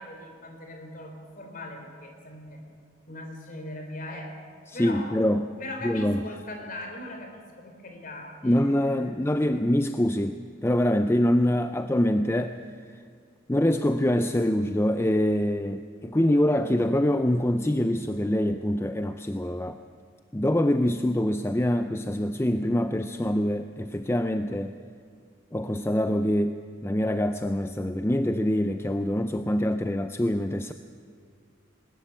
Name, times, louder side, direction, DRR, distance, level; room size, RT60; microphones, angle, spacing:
voice 1, 0.0-2.6 3.1-4.4 4.7-5.2 5.5-9.1, left 1 dB, 45° left, 3 dB, 3.6 m, -40 dB
voice 2, 4.7-5.5 5.8-6.2 8.4-12.6 13.5-19.8 20.3-24.7 25.5-30.7, left 1 dB, 15° left, 9 dB, 0.5 m, -25 dB
20.0 x 13.5 x 9.9 m, 2.1 s
head